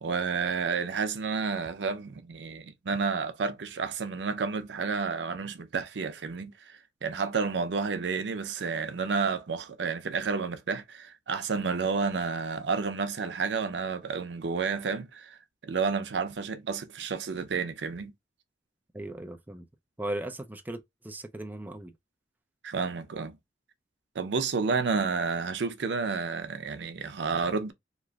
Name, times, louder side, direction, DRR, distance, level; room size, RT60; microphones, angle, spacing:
voice 1, 0.0-18.1 22.6-23.3 24.2-27.7, right 5 dB, 85° right, 0.5 m, -30 dB
voice 2, 18.9-19.6 20.0-20.8 21.0-21.9, right 1 dB, 10° right, 0.4 m, -37 dB
3.0 x 2.5 x 2.3 m
head